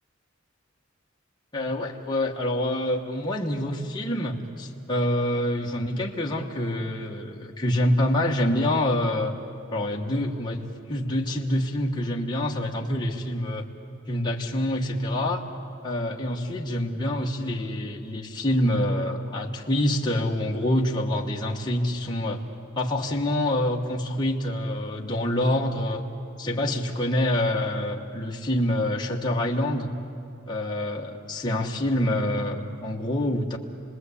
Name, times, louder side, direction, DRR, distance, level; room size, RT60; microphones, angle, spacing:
voice 1, 1.5-9.4 9.7-13.7 14.1-15.5 15.8-22.4 22.8-26.0 26.4-29.9 30.5-33.6, left 1 dB, 20° left, -2 dB, 1.3 m, -26 dB
27.5 x 20.5 x 8.4 m, 2.6 s
head